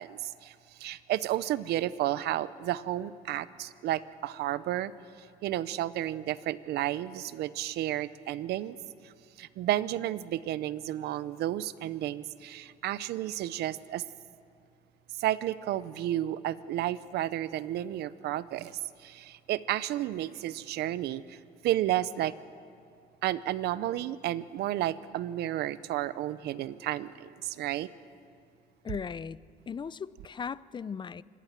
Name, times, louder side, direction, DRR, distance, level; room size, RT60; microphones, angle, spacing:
voice 1, 0.0-4.9 5.4-8.8 9.0-9.1 9.4-14.0 15.2-22.3 23.2-27.9, right 13 dB, 75° right, 16 dB, 0.8 m, -32 dB
voice 2, 28.8-31.2, left 6 dB, 25° left, 18 dB, 0.5 m, -38 dB
26.0 x 20.5 x 7.4 m, 2.4 s
cardioid pair, 110°, 17 cm